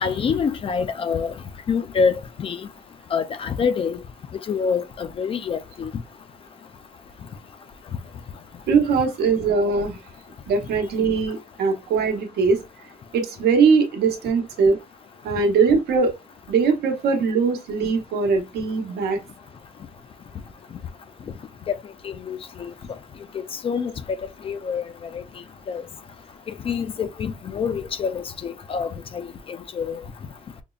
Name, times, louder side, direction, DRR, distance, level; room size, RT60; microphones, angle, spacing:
voice 1, 0.0-1.3 1.7-2.6 3.1-4.0 4.5-5.9 21.7-21.8 22.0-22.7 23.6-23.9 24.4-24.9 25.1-25.2 25.7-25.8 26.7-30.0, left 6 dB, 35° left, 0.3 m, -26 dB
voice 2, 8.7-10.0 10.5-12.6 13.1-14.8 15.2-16.1 16.5-19.2, right 5 dB, 85° right, 0.9 m, -21 dB
5.2 x 2.0 x 2.3 m
cardioid pair, 130°, 17 cm